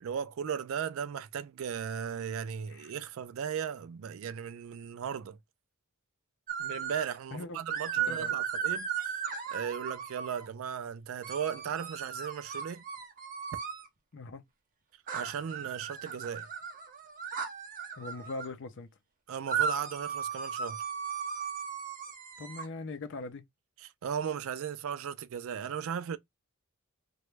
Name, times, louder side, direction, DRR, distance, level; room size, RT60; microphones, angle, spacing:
voice 1, 0.0-5.4 6.6-9.2 9.5-12.8 15.1-16.5 19.3-20.8 23.8-26.2, right 8 dB, 65° right, 0.3 m, -36 dB
sound 1, 6.5-7.2 7.7-10.5 11.2-13.9 15.1-18.5 19.5-22.6, right 7 dB, 40° right, 0.7 m, -36 dB
voice 2, 8.0-8.4 14.1-14.4 18.0-18.9 22.4-23.4, left 3 dB, 55° left, 0.5 m, -41 dB
2.9 x 2.2 x 3.1 m
head